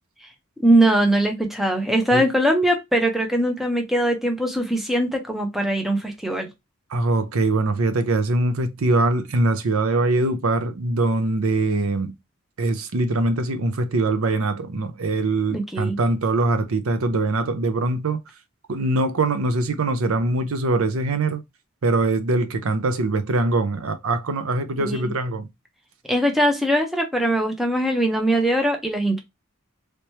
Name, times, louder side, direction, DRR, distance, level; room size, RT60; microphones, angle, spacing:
voice 1, 0.6-6.5 15.5-16.0 24.8-25.1 26.1-29.2, right 1 dB, ahead, 0.7 m, -21 dB
voice 2, 6.9-12.1 12.6-18.3 18.7-21.4 21.8-25.5, right 2 dB, 75° right, 0.6 m, -22 dB
3.3 x 2.9 x 3.1 m
head